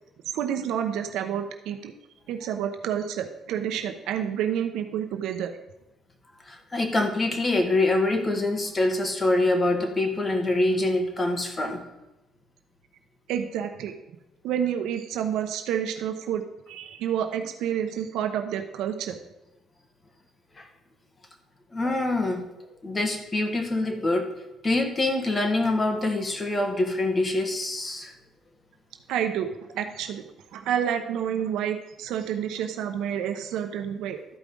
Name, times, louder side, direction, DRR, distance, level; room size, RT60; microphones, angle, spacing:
voice 1, 0.3-1.9 2.3-5.5 13.3-13.9 14.4-19.2 29.1-30.2 30.5-34.2, right 9 dB, 85° right, 6 dB, 0.9 m, -29 dB
voice 2, 6.4-11.8 20.6-20.7 21.7-22.4 22.8-24.3 24.6-28.1, left 2 dB, 20° left, 4 dB, 1.5 m, -25 dB
13.0 x 4.9 x 5.4 m, 0.99 s
cardioid pair, 130°, 0 cm